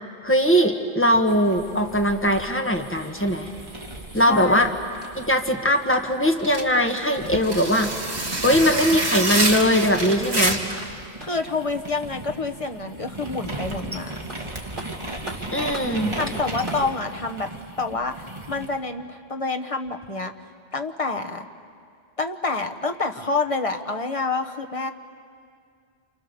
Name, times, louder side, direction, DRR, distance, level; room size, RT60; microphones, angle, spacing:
voice 1, 0.2-3.5 4.1-4.7 5.2-7.9 8.4-10.6 15.5-16.2, equal, 10° left, 3 dB, 1.6 m, -20 dB
sound 1, 1.3-6.7 7.1-18.8, right 1 dB, 25° right, 2.1 m, -37 dB
voice 2, 4.2-4.7 11.2-14.1 16.2-17.5 17.8-20.3 20.7-21.5 22.2-24.9, left 3 dB, 30° left, 5 dB, 1.2 m, -28 dB
sound 2, 5.0-6.3 9.3-11.5 13.8-13.9 14.3-16.9, right 1 dB, 50° right, 4.1 m, -41 dB
sound 3, 6.4-10.9, right 2 dB, 80° right, 2.9 m, -26 dB
29.5 x 27.5 x 7.0 m, 2.3 s
omnidirectional pair, 1.1 m